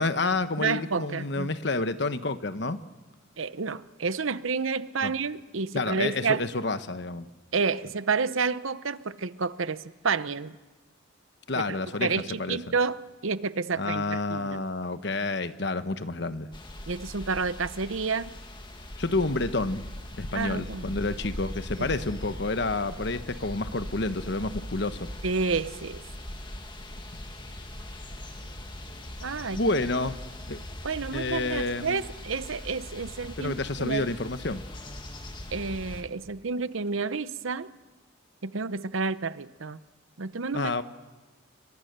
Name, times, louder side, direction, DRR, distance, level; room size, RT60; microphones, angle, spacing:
voice 1, 0.0-2.8 5.0-5.1 5.7-7.3 11.5-12.6 13.8-16.5 19.0-19.8 20.2-25.1 29.6-30.2 30.5-30.6 31.1-32.0 33.4-34.6 40.5-40.8, left 2 dB, 55° left, 11 dB, 1.1 m, -29 dB
voice 2, 0.6-1.5 3.4-6.5 7.5-10.5 11.6-13.0 13.2-14.6 16.9-18.4 20.3-21.0 21.8-21.9 25.2-26.0 29.2-29.6 30.8-33.5 33.8-34.1 35.5-37.7 38.4-39.8 40.2-40.8, right 4 dB, 80° right, 14 dB, 0.8 m, -30 dB
sound 1, 16.5-36.0, left 1 dB, 25° left, 2.0 m, -40 dB
30.0 x 23.5 x 6.8 m, 1.2 s
head